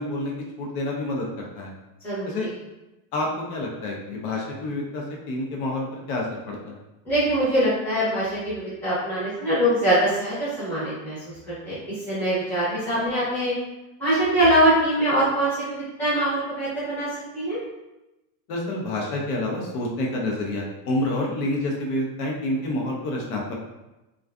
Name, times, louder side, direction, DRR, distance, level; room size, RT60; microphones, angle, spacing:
voice 1, 0.0-1.7 2.2-2.5 3.1-6.7 18.5-23.5, left 1 dB, 70° left, -1 dB, 0.7 m, -28 dB
voice 2, 7.0-11.2 11.5-11.8 12.1-13.5 14.0-17.1 17.3-17.6, right 1 dB, 5° left, -13 dB, 0.6 m, -23 dB
2.4 x 2.3 x 2.2 m, 0.99 s
supercardioid pair, 180°, 45 cm